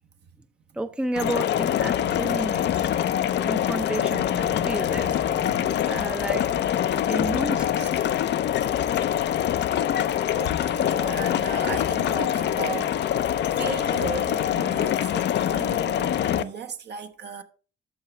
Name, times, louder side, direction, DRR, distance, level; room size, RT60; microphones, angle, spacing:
voice 1, 0.7-2.9 3.4-5.2 5.9-6.5 7.1-7.9, right 1 dB, 5° right, 0.5 m, -31 dB
sound 1, 1.2-16.4, left 10 dB, 60° left, 0.5 m, -24 dB
voice 2, 1.9-2.3 4.4-4.7 5.0-5.8 7.8-7.9 10.3-13.2 13.5-17.4, right 6 dB, 60° right, 1.1 m, -36 dB
13.0 x 4.8 x 3.2 m
cardioid pair, 90°, 20 cm